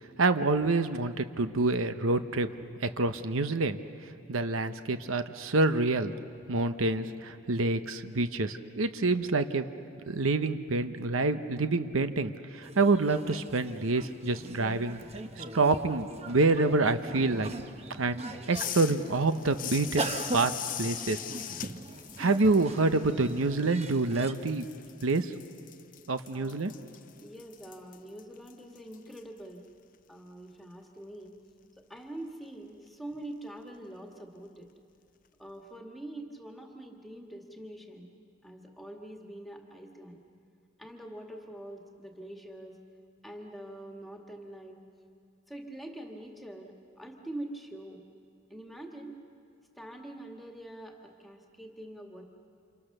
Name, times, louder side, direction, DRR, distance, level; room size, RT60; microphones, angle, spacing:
voice 1, 0.2-2.5 2.8-6.1 6.5-9.7 10.1-15.0 15.4-17.5 18.0-18.2 18.5-20.5 20.8-21.2 22.2-24.7 25.0-25.3 26.1-26.7, right 3 dB, 85° right, 10 dB, 0.9 m, -27 dB
sound 1, 12.6-24.3, right 2 dB, 30° right, 1.0 m, -40 dB
sound 2, 18.5-24.1 24.3-29.2, left 12 dB, 40° left, 0.6 m, -41 dB
voice 2, 26.3-26.6 27.2-29.7 30.1-31.4 31.9-34.7 35.4-38.1 38.4-40.2 40.8-42.8 43.2-44.8 45.5-48.0 48.5-49.2 49.8-52.2, right 1 dB, ahead, 1 dB, 1.9 m, -44 dB
29.5 x 27.5 x 6.7 m, 2.5 s
head